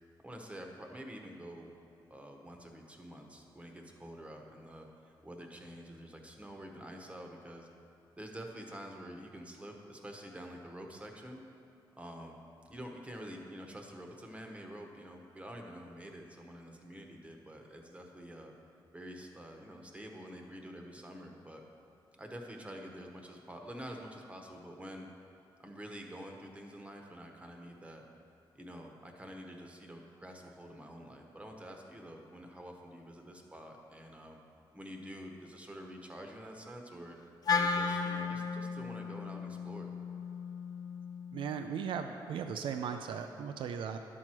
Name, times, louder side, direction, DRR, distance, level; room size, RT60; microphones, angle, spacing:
voice 1, 0.2-1.7 2.1-7.7 8.2-11.4 12.0-12.4 12.7-18.5 18.9-21.6 22.1-25.1 25.6-28.0 28.5-34.4 34.7-37.2 37.5-39.9, equal, 15° right, 2 dB, 1.0 m, -47 dB
Wind instrument woodwind instrument, 37.5-41.7, left 5 dB, 50° left, 0.6 m, -35 dB
voice 2, 41.3-44.0, right 7 dB, 85° right, 7 dB, 0.4 m, -37 dB
10.5 x 6.2 x 4.4 m, 2.7 s
cardioid pair, 105°, 8 cm